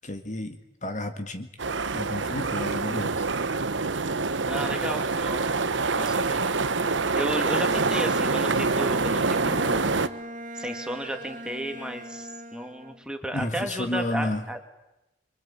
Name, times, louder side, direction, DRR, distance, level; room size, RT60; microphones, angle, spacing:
voice 1, 0.0-1.5 1.9-3.3 13.3-14.4, left 1 dB, 40° left, 7 dB, 1.8 m, -31 dB
sound 1, 1.6-10.1, right 4 dB, 80° right, 1.1 m, -26 dB
voice 2, 4.4-6.4 7.1-10.0 10.5-14.7, equal, 5° right, 5 dB, 2.6 m, -34 dB
Bowed string instrument, 7.0-13.1, equal, 40° right, 2.5 m, -40 dB
26.0 x 23.5 x 8.8 m, 0.92 s
head